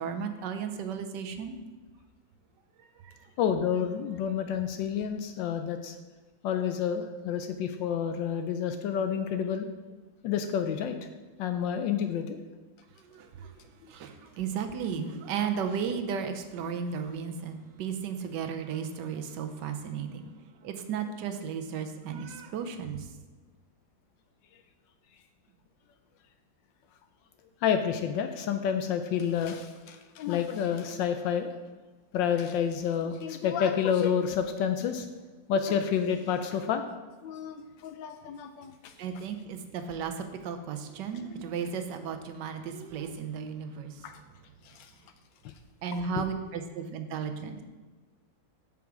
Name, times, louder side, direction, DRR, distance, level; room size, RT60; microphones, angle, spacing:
voice 1, 0.0-1.5 3.0-3.1 13.1-13.5 13.9-20.3 20.6-23.1 39.0-44.0 45.8-47.6, right 7 dB, 70° right, 7 dB, 1.3 m, -34 dB
voice 2, 3.4-6.0 6.4-9.7 10.2-11.0 11.4-12.4 27.6-31.5 32.1-35.1 35.5-36.8 37.2-37.6 37.8-38.9 44.0-44.1 44.7-44.8 45.4-45.5 46.2-46.3, left 8 dB, 75° left, 7 dB, 1.2 m, -29 dB
7.2 x 6.0 x 4.8 m, 1.3 s
omnidirectional pair, 2.1 m